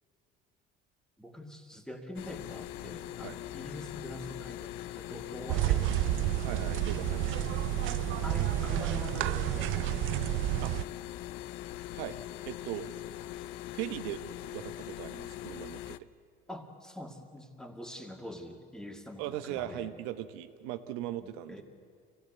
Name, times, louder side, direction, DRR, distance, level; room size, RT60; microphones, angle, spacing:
voice 1, 1.2-6.3 8.2-9.9 16.5-19.9 21.2-21.6, equal, 5° left, 3 dB, 2.4 m, -44 dB
sound 1, 2.2-16.0, left 14 dB, 80° left, 0.6 m, -42 dB
sound 2, 5.5-10.8, right 16 dB, 70° right, 0.5 m, -30 dB
voice 2, 6.4-7.5 10.6-10.7 11.9-12.2 12.4-12.9 13.7-14.2 14.5-16.0 19.2-21.6, right 13 dB, 90° right, 10 dB, 1.1 m, -39 dB
24.5 x 17.0 x 8.0 m, 2.1 s
supercardioid pair, 95°, 21 cm